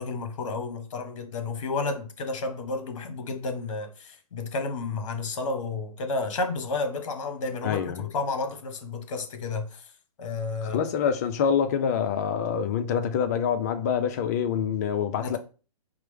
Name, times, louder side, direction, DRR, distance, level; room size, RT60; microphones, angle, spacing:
voice 1, 0.0-9.8 10.2-10.8 15.2-15.4, left 3 dB, 55° left, 0.8 m, -31 dB
voice 2, 7.6-8.1 10.7-15.4, left 7 dB, 25° left, 0.3 m, -26 dB
4.5 x 2.0 x 3.2 m
figure-of-eight pair, 130°, 20 cm